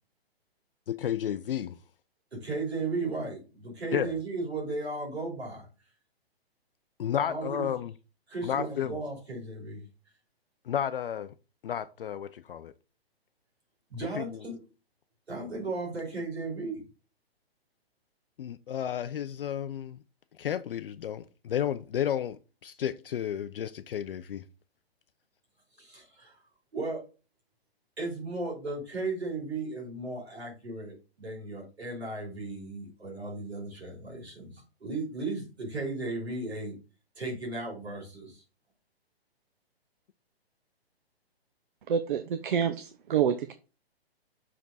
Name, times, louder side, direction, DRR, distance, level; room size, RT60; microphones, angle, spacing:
voice 1, 0.9-1.8 3.9-4.1 7.0-7.9 8.4-8.9 10.7-11.3 11.6-12.7 14.2-14.3 18.4-20.0 20.4-24.4, left 9 dB, 60° left, 0.5 m, -32 dB
voice 2, 2.3-5.7 7.3-7.7 8.3-9.8 13.9-14.6 15.3-16.8 25.8-26.4 26.7-27.0 28.0-36.8 37.2-38.4, right 3 dB, 80° right, 3.6 m, -35 dB
voice 3, 41.9-43.5, right 8 dB, 55° right, 0.6 m, -27 dB
6.0 x 5.0 x 3.9 m
figure-of-eight pair, 130°, 31 cm